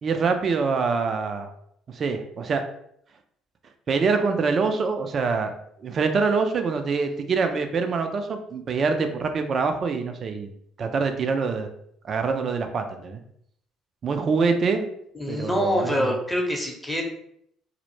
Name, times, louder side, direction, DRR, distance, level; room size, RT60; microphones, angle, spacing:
voice 1, 0.0-1.5 1.9-2.6 3.9-5.5 5.8-10.5 10.8-11.7 12.0-13.2 14.0-14.9 15.3-16.2, right 4 dB, 45° right, 6 dB, 0.3 m, -25 dB
voice 2, 15.1-17.0, equal, 5° left, 0 dB, 0.7 m, -25 dB
2.0 x 2.0 x 3.1 m, 0.70 s
hypercardioid pair, 55°, 0 cm